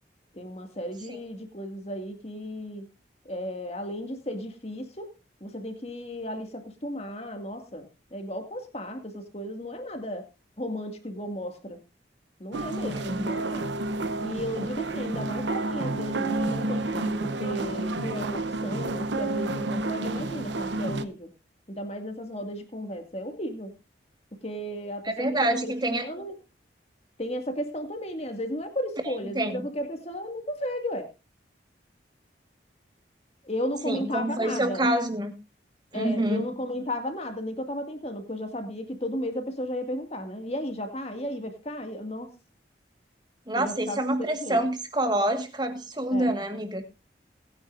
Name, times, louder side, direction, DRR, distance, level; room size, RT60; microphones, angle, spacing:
voice 1, 0.3-2.9 3.2-5.1 5.4-10.3 10.6-11.8 12.4-13.7 14.2-21.3 21.7-23.7 24.3-26.4 27.2-31.1 33.4-34.9 35.9-42.3 43.6-44.0 44.4-44.6 46.1-46.3, equal, 35° left, 6 dB, 2.1 m, -34 dB
sound 1, 12.5-21.0, right 2 dB, 80° right, 0.8 m, -30 dB
voice 2, 12.8-13.3 25.0-26.1 29.0-29.6 33.8-35.3 35.9-36.5 43.5-46.8, right 1 dB, 25° right, 7 dB, 1.6 m, -27 dB
19.5 x 9.6 x 2.6 m, 0.26 s
head